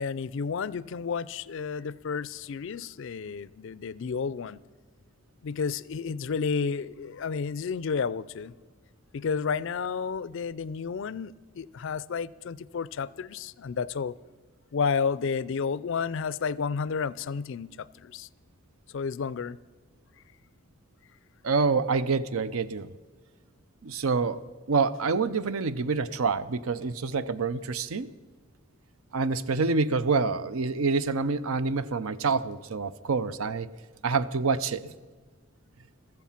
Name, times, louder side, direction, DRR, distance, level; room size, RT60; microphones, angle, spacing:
voice 1, 0.0-4.6 5.4-8.5 9.1-14.2 14.7-18.3 18.9-19.6, left 5 dB, 60° left, 0.4 m, -31 dB
voice 2, 21.4-22.9 23.8-24.4 24.7-28.1 29.1-33.7 34.0-34.9, right 4 dB, 75° right, 0.6 m, -27 dB
14.5 x 13.5 x 5.8 m
head